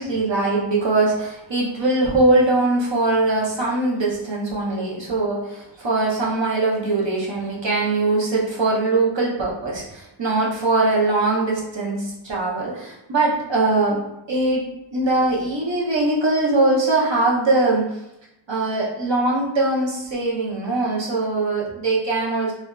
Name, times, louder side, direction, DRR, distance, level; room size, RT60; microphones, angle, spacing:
voice 1, 0.0-14.0 14.3-14.7 14.9-18.0 18.5-22.5, right 2 dB, 60° right, -4 dB, 0.9 m, -21 dB
3.3 x 2.4 x 2.3 m, 0.88 s
wide cardioid pair, 60°, 50 cm